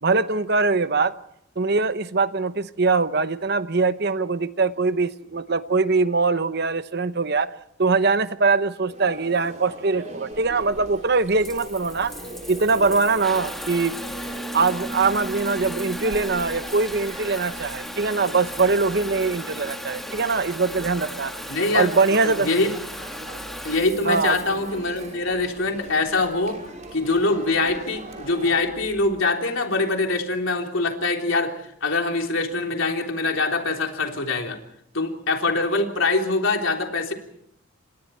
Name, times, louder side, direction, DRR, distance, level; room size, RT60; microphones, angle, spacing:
voice 1, 0.0-1.1 1.6-7.5 7.8-12.1 12.5-14.0 14.5-21.3 21.7-22.5 24.1-24.4, right 4 dB, 50° right, 13 dB, 0.9 m, -22 dB
sound 1, 8.9-28.7, right 1 dB, 35° right, 5.8 m, -42 dB
Water tap faucet / Bathtub (filling or washing) / Trickle dribble, 10.3-29.2, equal, ahead, 2.0 m, -37 dB
voice 2, 21.5-21.9 22.2-22.7 23.6-26.6 26.9-31.5 31.8-34.6 34.9-37.1, left 3 dB, 75° left, 2 dB, 3.6 m, -23 dB
29.0 x 25.5 x 4.5 m, 0.73 s
head